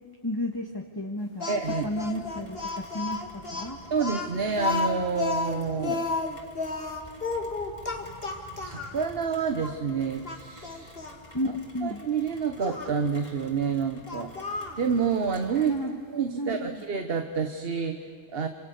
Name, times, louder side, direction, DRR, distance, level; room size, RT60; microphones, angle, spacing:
voice 1, 0.2-1.5 1.8-3.2 3.5-3.8 11.3-12.0 15.5-15.9 16.4-16.8, left 1 dB, 20° left, -1 dB, 2.0 m, -32 dB
Speech, 1.4-9.0 9.6-9.7 10.2-11.2 12.6-12.9 14.1-14.8, left 4 dB, 65° left, 2.4 m, -32 dB
voice 2, 1.5-1.9 3.9-6.1 8.6-11.0 11.8-15.7 16.1-18.5, right 6 dB, 65° right, 7 dB, 1.4 m, -28 dB
Rain, 1.6-15.8, left 1 dB, 45° left, 3.3 m, -50 dB
28.5 x 27.0 x 6.6 m, 2.3 s
omnidirectional pair, 1.1 m